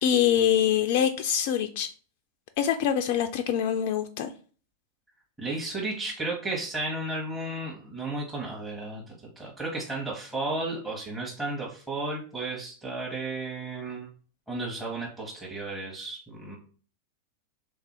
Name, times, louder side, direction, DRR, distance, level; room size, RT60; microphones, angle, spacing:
voice 1, 0.0-1.9 2.6-4.3, left 9 dB, 50° left, 6 dB, 0.3 m, -24 dB
voice 2, 5.4-14.1 14.5-16.6, right 2 dB, 10° right, -4 dB, 0.9 m, -33 dB
3.4 x 2.6 x 4.5 m, 0.41 s
figure-of-eight pair, 90°, 0 cm